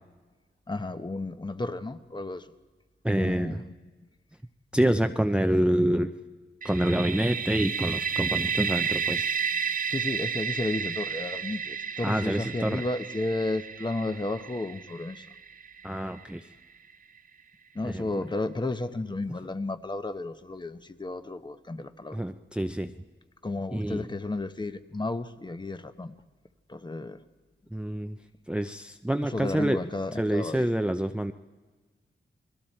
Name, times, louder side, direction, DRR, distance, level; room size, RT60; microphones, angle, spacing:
voice 1, 0.7-2.5 3.2-3.7 9.9-15.3 17.7-22.3 23.4-26.2 26.7-27.2 29.2-30.7, left 2 dB, 20° left, 10 dB, 1.0 m, -33 dB
voice 2, 3.0-3.6 4.7-6.1 6.6-9.3 12.0-12.8 15.8-16.4 17.8-18.0 22.1-22.9 23.7-24.1 27.7-28.2 28.5-29.8 30.2-31.3, right 1 dB, 5° right, 7 dB, 0.6 m, -27 dB
sound 1, 6.6-16.3, right 7 dB, 45° right, 0.6 m, -32 dB
29.5 x 21.0 x 4.4 m, 1.3 s
wide cardioid pair, 115°, 20 cm